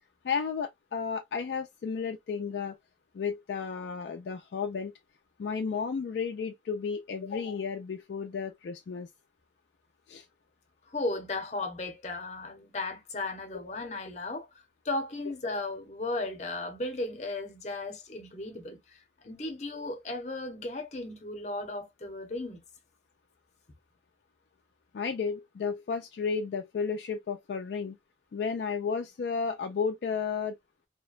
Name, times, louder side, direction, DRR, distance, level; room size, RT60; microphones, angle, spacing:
voice 1, 0.2-2.8 3.1-4.9 5.4-9.1 10.1-10.2 13.5-13.6 24.9-28.0 28.3-30.6, left 5 dB, 65° left, 0.3 m, -33 dB
voice 2, 10.9-14.5 14.8-22.6, left 2 dB, 40° left, 0.7 m, -35 dB
2.8 x 2.1 x 2.3 m
head